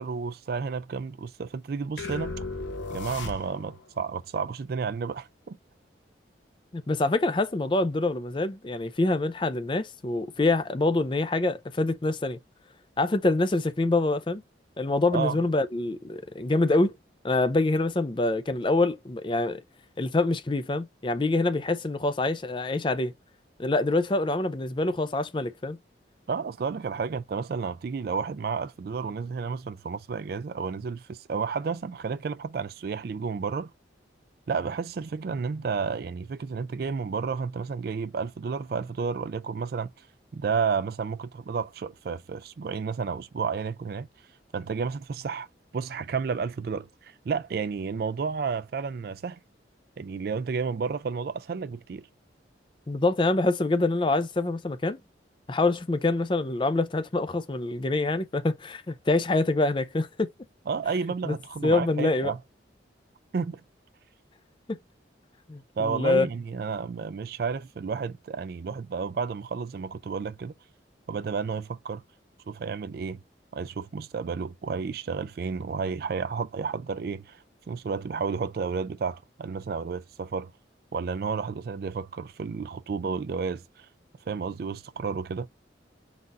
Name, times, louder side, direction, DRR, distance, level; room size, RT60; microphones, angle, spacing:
voice 1, 0.0-2.4 2.9-5.6 15.1-15.4 26.3-33.7 34.5-40.1 40.3-44.1 44.5-45.5 45.7-49.4 50.0-52.1 60.7-62.4 63.3-63.6 65.8-70.5 71.1-72.0 72.5-73.2 73.5-80.5 80.9-83.9 84.3-85.5, right 5 dB, 55° right, 0.3 m, -31 dB
sound 1, 2.0-3.9, left 3 dB, 85° left, 0.9 m, -35 dB
voice 2, 6.7-12.4 13.0-14.4 14.8-17.0 17.2-19.6 20.0-23.1 23.6-25.8 52.9-55.0 55.5-60.3 61.3-61.4 61.6-62.3 64.7-64.8 65.5-66.3, left 2 dB, 25° left, 0.5 m, -25 dB
4.0 x 2.5 x 3.9 m
head